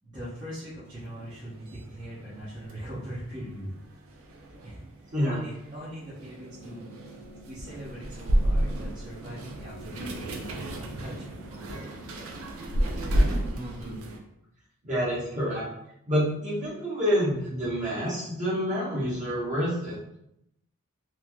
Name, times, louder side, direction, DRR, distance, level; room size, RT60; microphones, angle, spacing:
voice 1, 0.0-3.7 4.6-11.8, equal, 20° right, -12 dB, 0.7 m, -41 dB
sound 1, 0.9-14.2, right 1 dB, 75° right, 0.5 m, -32 dB
voice 2, 13.5-14.0 14.8-15.7 16.1-20.0, equal, 35° right, -8 dB, 1.1 m, -28 dB
3.1 x 2.5 x 2.2 m, 0.79 s
head